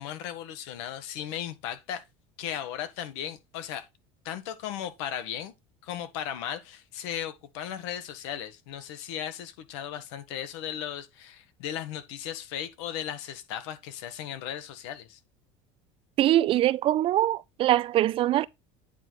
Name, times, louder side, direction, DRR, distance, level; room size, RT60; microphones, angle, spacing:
voice 1, 0.0-2.0 2.4-3.9 4.2-5.5 5.8-15.2, left 10 dB, 75° left, 1.3 m, -36 dB
voice 2, 16.2-18.5, right 13 dB, 40° right, 0.4 m, -23 dB
9.0 x 4.6 x 4.1 m
supercardioid pair, 125°, 14 cm